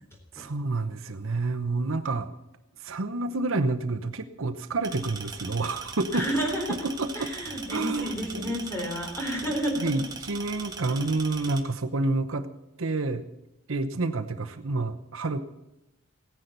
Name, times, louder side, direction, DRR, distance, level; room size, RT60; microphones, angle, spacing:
voice 1, 0.3-2.3 2.8-6.2 6.8-7.3 7.7-8.5 9.8-12.5 12.8-13.2 13.7-15.4, right 3 dB, 70° right, 9 dB, 0.9 m, -29 dB
sound 1, 4.8-11.6, right 4 dB, 20° right, 1.7 m, -40 dB
voice 2, 6.1-6.7 7.1-9.9, equal, 10° left, 1 dB, 3.9 m, -30 dB
16.5 x 10.0 x 6.7 m, 0.94 s
head